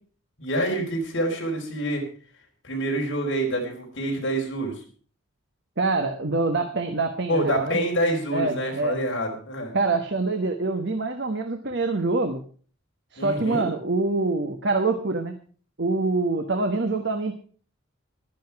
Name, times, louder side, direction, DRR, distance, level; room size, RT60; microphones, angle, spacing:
voice 1, 0.4-2.1 2.6-4.8 7.3-9.8 13.2-13.7, right 1 dB, 60° left, 1 dB, 4.4 m, -27 dB
voice 2, 5.8-7.8 8.3-9.0 9.7-12.4 13.1-15.4 15.8-17.3, right 3 dB, 55° right, 6 dB, 1.3 m, -25 dB
14.5 x 12.0 x 4.7 m, 0.43 s
head